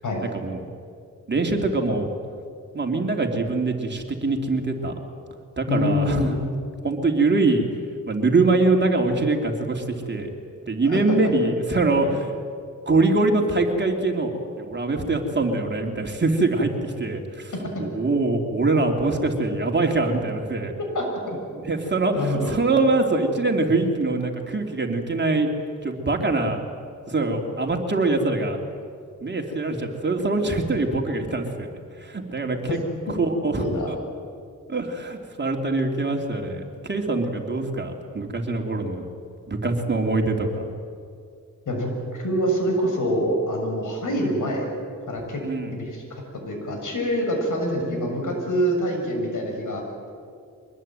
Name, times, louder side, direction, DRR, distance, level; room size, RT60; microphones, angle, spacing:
voice 1, 1.3-2.1 2.7-4.9 5.6-6.4 6.8-7.7 8.1-10.3 10.7-12.2 12.9-17.5 17.8-20.7 21.7-25.5 25.8-26.6 27.1-28.6 29.2-31.7 32.0-32.6 33.2-33.9 34.7-39.0 39.5-40.6 45.4-45.7, right 3 dB, 35° right, 2 dB, 3.2 m, -23 dB
voice 2, 5.7-6.3 10.8-11.3 12.0-12.1 20.9-21.4 22.1-22.5 32.7-32.8 33.5-33.9 41.7-44.8 45.1-45.4 45.7-46.0 46.5-50.1, equal, 75° left, 2 dB, 7.0 m, -25 dB
24.0 x 20.5 x 9.1 m, 2.3 s
cardioid pair, 75°, 31 cm